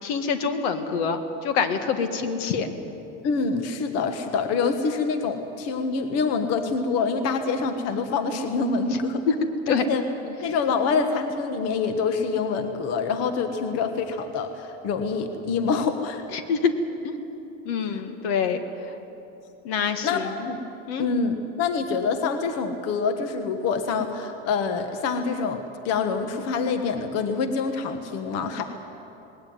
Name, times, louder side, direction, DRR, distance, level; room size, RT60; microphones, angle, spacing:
voice 1, 0.0-2.7 9.7-9.8 16.3-16.7 17.0-17.1 17.6-18.6 19.6-20.5 20.9-21.1, left 6 dB, 80° left, 8 dB, 1.7 m, -26 dB
voice 2, 3.2-9.2 9.7-10.0 10.4-16.2 17.9-18.0 19.8-20.6 21.0-28.6, left 5 dB, 55° left, 7 dB, 1.5 m, -26 dB
19.5 x 17.0 x 9.6 m, 3.0 s
cardioid pair, 140°, 31 cm